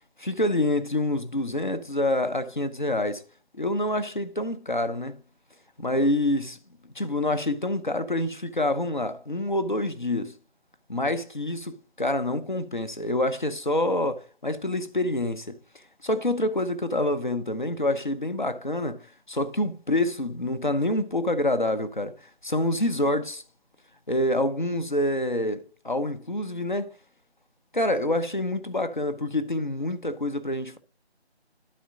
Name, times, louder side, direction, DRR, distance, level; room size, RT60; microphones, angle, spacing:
voice 1, 0.2-3.2 3.5-5.2 5.8-6.6 6.9-10.3 10.9-15.6 16.0-19.0 19.3-22.2 22.4-23.4 24.1-26.9 27.7-30.8, left 1 dB, 45° left, 0.8 m, -27 dB
11.5 x 4.3 x 3.8 m
figure-of-eight pair, 170°, 33 cm